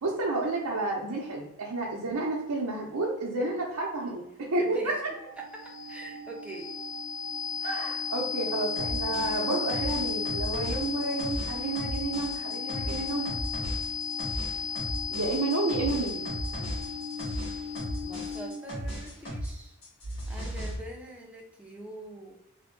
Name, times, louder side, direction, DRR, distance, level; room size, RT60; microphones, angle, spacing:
voice 1, 0.0-4.2 4.5-5.1 7.6-13.3 15.1-16.2, right 2 dB, 80° right, -4 dB, 0.7 m, -30 dB
voice 2, 4.6-4.9 5.4-6.7 16.5-16.8 18.0-19.8 20.3-22.4, right 1 dB, 5° right, -1 dB, 0.5 m, -44 dB
sound 1, 4.9-18.8, left 5 dB, 75° left, 0.6 m, -34 dB
sound 2, 8.8-19.5 19.8-20.8, equal, 50° left, 1.4 m, -36 dB
3.1 x 2.1 x 3.0 m, 0.88 s
head